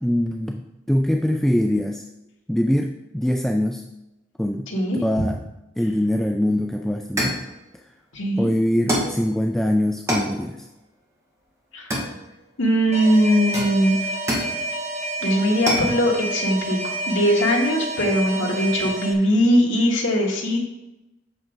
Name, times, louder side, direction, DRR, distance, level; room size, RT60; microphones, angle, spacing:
voice 1, 0.0-2.0 2.5-3.8 4.4-4.7 5.0-5.4 5.8-7.4 8.4-10.7, left 1 dB, ahead, 3 dB, 0.3 m, -23 dB
voice 2, 4.7-5.0 8.1-8.5 11.7-11.9 12.6-14.0 15.2-20.6, equal, 85° left, -2 dB, 1.5 m, -20 dB
sound 1, 6.5-6.6 7.2-7.5 8.9-9.2 10.1-10.4 11.9-12.5 13.5-14.6 15.7-15.9, equal, 15° right, 1.7 m, -25 dB
Alarm, 12.9-19.1, right 2 dB, 35° right, 0.9 m, -29 dB
7.9 x 5.9 x 3.8 m, 0.96 s
head